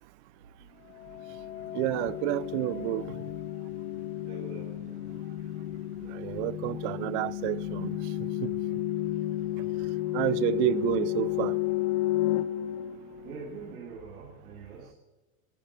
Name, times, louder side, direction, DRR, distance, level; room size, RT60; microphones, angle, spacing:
sound 1, 0.9-13.7, left 14 dB, 80° left, 1.1 m, -32 dB
voice 1, 1.7-3.0 6.2-7.9 8.4-8.5 10.1-11.5, right 19 dB, 55° right, 0.7 m, -29 dB
voice 2, 4.2-5.0 9.5-9.8 13.2-14.9, right 5 dB, 85° right, 3.3 m, -44 dB
14.5 x 10.5 x 8.3 m
supercardioid pair, 120°, 42 cm